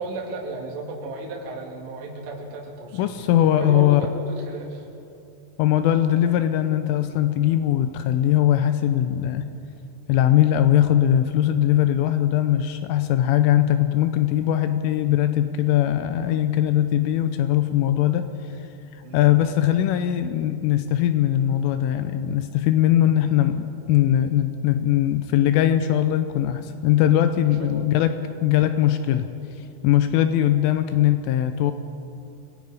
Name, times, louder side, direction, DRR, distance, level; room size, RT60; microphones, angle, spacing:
voice 1, 0.0-3.1 3.6-4.8 19.0-19.3 27.6-27.9, right 2 dB, 65° right, -1 dB, 4.1 m, -34 dB
voice 2, 2.9-4.0 5.6-9.5 10.1-18.3 19.1-29.3 29.8-31.7, left 11 dB, 85° left, 9 dB, 3.2 m, -20 dB
28.5 x 20.0 x 4.9 m, 2.7 s
omnidirectional pair, 5.8 m